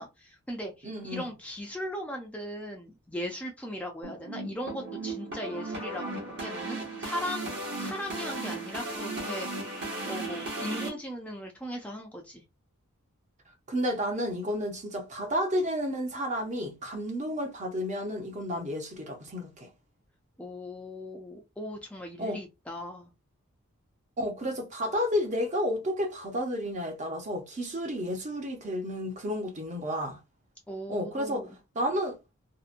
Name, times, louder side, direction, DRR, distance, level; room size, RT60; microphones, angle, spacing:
voice 1, 0.0-9.5 10.1-12.4 20.4-23.1 30.7-31.6, equal, 5° left, 0.4 m, -38 dB
voice 2, 0.8-1.3 13.7-19.7 22.2-22.4 24.2-30.2 30.9-31.5 31.8-32.2, equal, 35° right, 0.6 m, -31 dB
Cutoff MF, 4.0-10.9, right 2 dB, 50° right, 1.0 m, -36 dB
2.7 x 2.1 x 2.5 m
head